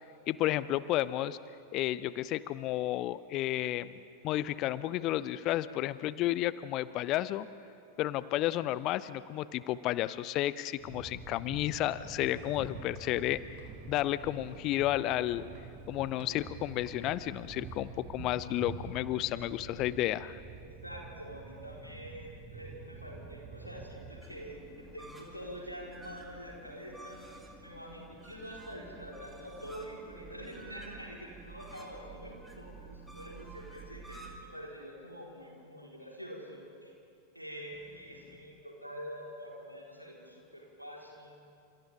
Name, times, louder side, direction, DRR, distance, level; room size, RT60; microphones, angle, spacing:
voice 1, 0.3-1.4 1.7-3.9 4.2-7.5 8.0-13.4 13.9-15.5 15.9-20.4, left 14 dB, 40° left, 17 dB, 0.6 m, -32 dB
sound 1, 10.8-24.2, right 5 dB, 30° right, 1.9 m, -47 dB
Walk footsteps / Siren, 12.1-17.7, right 4 dB, 50° right, 3.7 m, -59 dB
voice 2, 20.6-24.6 24.9-27.3 27.6-36.9 37.3-41.4, equal, 90° right, -3 dB, 4.4 m, -46 dB
sound 2, 24.2-34.4, right 3 dB, 5° right, 2.6 m, -50 dB
29.0 x 27.5 x 3.7 m, 2.5 s
figure-of-eight pair, 90°, 0 cm